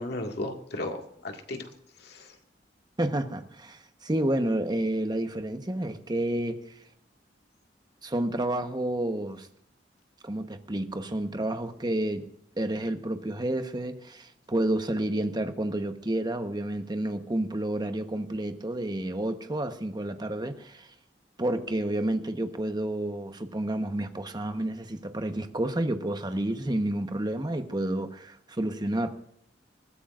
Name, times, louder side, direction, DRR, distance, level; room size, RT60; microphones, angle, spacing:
voice 1, 0.0-1.7 2.0-2.3, left 1 dB, 60° left, 2.0 m, -35 dB
voice 2, 3.0-6.6 8.0-9.5 10.2-12.2 12.6-20.9 21.4-29.1, right 1 dB, 25° right, 1.1 m, -30 dB
21.0 x 14.5 x 2.5 m
head